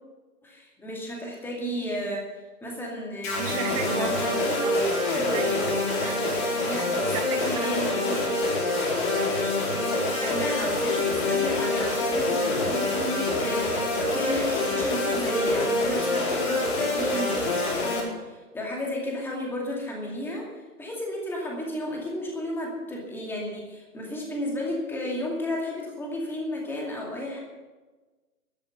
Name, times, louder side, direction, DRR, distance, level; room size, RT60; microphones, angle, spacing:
voice 1, 0.4-2.3 2.6-4.7 5.2-5.3 6.7-8.3 10.2-27.4, left 1 dB, 5° left, -2 dB, 2.4 m, -33 dB
sound 1, 3.2-18.0, left 2 dB, 30° left, 4.1 m, -26 dB
voice 2, 3.3-6.6 7.0-7.9 17.0-17.3 17.9-18.2, right 6 dB, 20° right, 7 dB, 1.2 m, -34 dB
11.5 x 11.0 x 8.1 m, 1.3 s
figure-of-eight pair, 135°, 46 cm